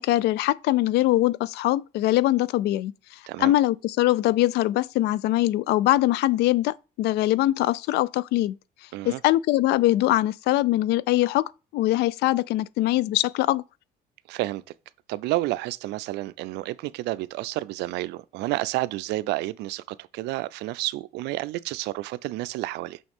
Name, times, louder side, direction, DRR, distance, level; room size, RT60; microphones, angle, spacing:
voice 1, 0.0-2.9 3.4-8.6 9.1-13.6, left 15 dB, 80° left, 0.4 m, -22 dB
voice 2, 14.3-14.6 15.1-23.0, right 17 dB, 85° right, 0.4 m, -30 dB
6.2 x 5.8 x 3.6 m
cardioid pair, 110°, 17 cm